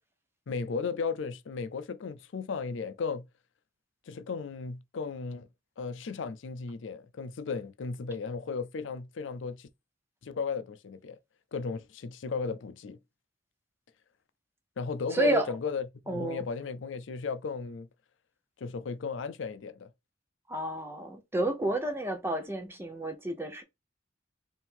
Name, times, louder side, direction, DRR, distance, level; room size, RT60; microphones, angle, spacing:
voice 1, 0.5-3.3 4.1-5.5 5.8-9.7 10.2-11.2 11.5-13.0 14.8-17.9 18.6-19.9, left 5 dB, 80° left, 0.5 m, -35 dB
voice 2, 15.1-15.5 16.1-16.4 20.5-23.6, right 1 dB, 10° right, 0.6 m, -30 dB
3.7 x 2.6 x 4.3 m
head